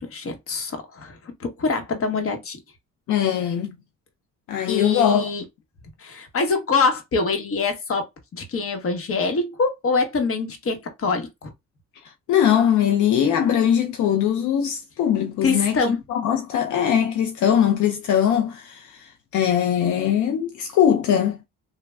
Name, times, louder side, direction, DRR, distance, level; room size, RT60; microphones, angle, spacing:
voice 1, 0.0-2.6 4.7-5.4 6.0-8.1 8.3-11.5 15.4-16.0, left 4 dB, 50° left, 1.0 m, -24 dB
voice 2, 3.1-3.7 4.5-5.3 12.0-21.4, left 9 dB, 75° left, 0.5 m, -21 dB
3.2 x 2.2 x 2.2 m
cardioid pair, 90°, 30 cm